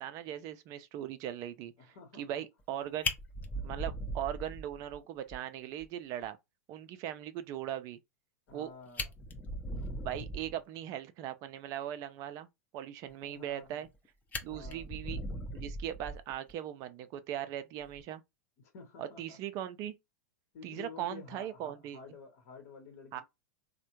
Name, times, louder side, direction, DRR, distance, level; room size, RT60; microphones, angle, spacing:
voice 1, 0.0-1.7 2.2-3.1 3.6-6.4 6.7-8.0 8.5-8.7 10.0-12.5 12.7-13.9 14.4-15.2 15.5-18.2 19.0-19.9 20.6-22.0 23.1-23.2, right 11 dB, 40° right, 0.4 m, -39 dB
voice 2, 1.8-2.4 8.5-9.1 13.1-13.9 14.5-14.9 18.6-19.4 20.5-23.2, left 5 dB, 55° left, 0.9 m, -51 dB
Fire, 2.6-2.7 3.0-5.0 5.3-5.4 5.8-5.9 6.2-6.3 8.5-8.6 8.9-10.6 13.4-14.0 14.3-16.5 17.8-18.0, left 1 dB, 20° left, 0.6 m, -39 dB
3.3 x 2.1 x 2.9 m
hypercardioid pair, 100°, 9 cm